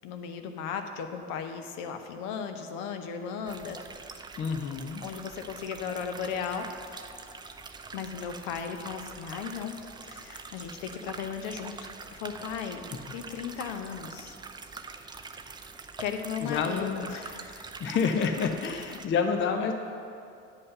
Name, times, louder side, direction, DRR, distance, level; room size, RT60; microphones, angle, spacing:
voice 1, 0.0-4.2 5.0-6.7 7.9-9.8 10.0-14.4 16.0-17.7, left 7 dB, 55° left, 6 dB, 1.0 m, -36 dB
sound 1, 3.5-19.1, right 4 dB, 10° right, 0.4 m, -44 dB
voice 2, 4.4-5.0 16.4-17.1 17.8-19.7, left 6 dB, 30° left, 6 dB, 0.7 m, -28 dB
9.4 x 5.4 x 6.6 m, 2.5 s
hypercardioid pair, 75°, 38 cm